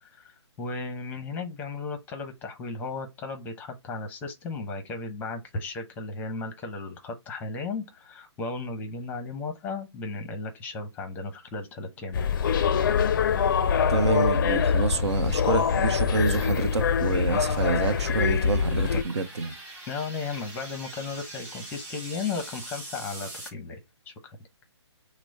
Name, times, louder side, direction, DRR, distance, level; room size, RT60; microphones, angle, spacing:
voice 1, 0.0-12.3 19.9-23.8 24.1-24.4, left 4 dB, 10° left, 0.7 m, -35 dB
sound 1, 12.0-23.5, right 2 dB, 15° right, 1.6 m, -45 dB
sound 2, 12.1-19.0, left 7 dB, 45° left, 0.4 m, -24 dB
voice 2, 13.9-19.6, right 4 dB, 70° right, 0.8 m, -27 dB
6.0 x 2.1 x 4.1 m
hypercardioid pair, 150°, 15 cm